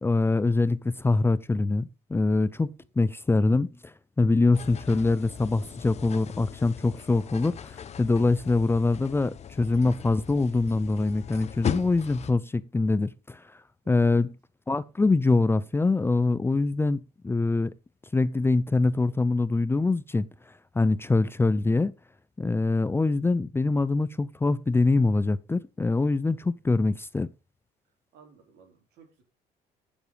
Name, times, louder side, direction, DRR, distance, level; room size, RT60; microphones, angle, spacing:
voice 1, 0.0-2.7 3.0-13.4 13.9-14.3 14.7-17.7 18.1-20.3 20.7-21.9 22.4-27.3, left 3 dB, 15° left, 0.5 m, -24 dB
sound 1, 4.5-12.3, left 8 dB, 40° left, 0.8 m, -38 dB
voice 2, 13.8-14.3 28.1-29.2, right 5 dB, 80° right, 4.5 m, -55 dB
13.0 x 7.1 x 3.4 m
cardioid pair, 110°, 17 cm